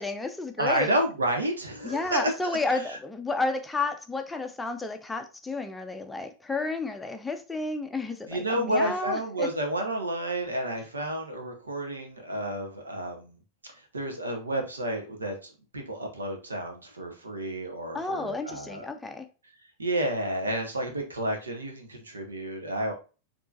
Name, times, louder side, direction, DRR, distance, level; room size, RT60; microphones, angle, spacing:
voice 1, 0.0-1.0 1.8-9.5 17.9-19.3, left 3 dB, 10° left, 0.5 m, -31 dB
voice 2, 0.6-3.0 8.3-13.4 13.9-18.9 19.8-22.9, right 1 dB, 75° right, 1.1 m, -30 dB
6.8 x 3.0 x 2.5 m
figure-of-eight pair, 90°, 0 cm